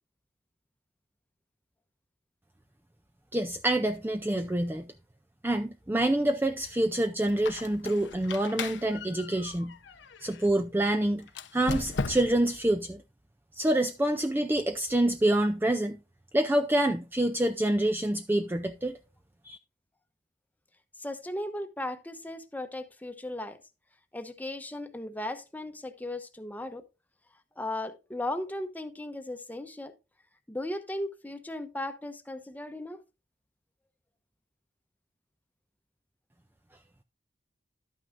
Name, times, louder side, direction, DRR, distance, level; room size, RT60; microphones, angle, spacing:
voice 1, 3.3-4.9 5.4-9.7 10.2-13.0 13.6-16.0 16.3-19.0 19.5-19.6, right 1 dB, 10° right, 0.4 m, -27 dB
Squeak, 7.3-10.5 11.3-12.6, left 4 dB, 80° left, 0.8 m, -37 dB
voice 2, 21.0-23.6 24.1-26.8 27.6-29.9 30.5-33.0, left 1 dB, 10° left, 0.9 m, -36 dB
11.5 x 9.1 x 2.5 m
head